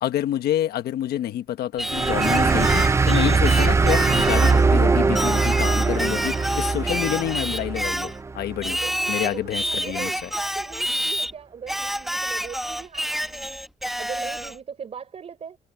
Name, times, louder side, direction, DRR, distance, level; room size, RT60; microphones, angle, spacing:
voice 1, 0.0-8.8 9.1-10.3, left 12 dB, 80° left, 1.3 m, -28 dB
Singing, 1.8-4.6 5.2-8.2 8.6-11.3 11.7-14.6, equal, ahead, 1.0 m, -28 dB
sound 1, 1.9-9.0, right 4 dB, 15° right, 0.6 m, -21 dB
voice 2, 8.8-13.6 14.0-15.6, right 7 dB, 40° right, 4.8 m, -39 dB
cardioid pair, 145°, 16 cm